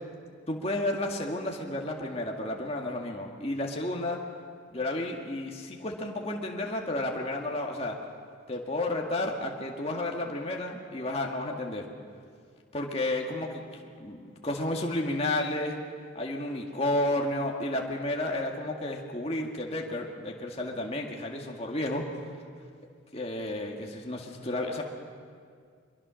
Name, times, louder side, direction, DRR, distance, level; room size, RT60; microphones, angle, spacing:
voice 1, 0.5-4.2 4.7-8.0 8.5-11.8 12.7-13.6 14.0-14.2 14.4-15.8 16.2-22.1 23.1-24.8, left 1 dB, 30° left, 0 dB, 2.0 m, -31 dB
24.0 x 22.5 x 6.4 m, 2.1 s
head